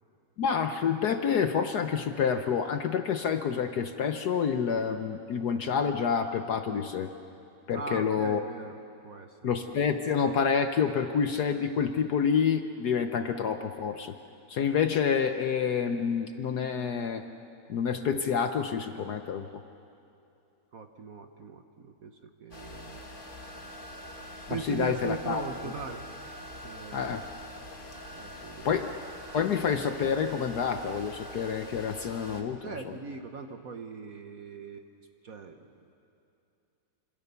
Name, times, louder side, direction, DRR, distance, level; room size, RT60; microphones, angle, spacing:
voice 1, 0.4-7.1 7.7-8.4 9.4-14.1 14.5-17.2 17.7-19.5 24.5-25.4 26.9-27.2 28.6-28.9 29.3-32.6, left 7 dB, 60° left, 7 dB, 1.2 m, -28 dB
voice 2, 7.7-8.8 9.0-9.5 20.7-23.9 24.5-26.1 26.4-27.3 28.1-28.8 32.6-34.9 35.2-35.6, right 5 dB, 50° right, 6 dB, 1.2 m, -40 dB
sound 1, 22.5-32.4, left 1 dB, 25° left, 1.9 m, -44 dB
26.0 x 26.0 x 6.9 m, 2.7 s
omnidirectional pair, 2.3 m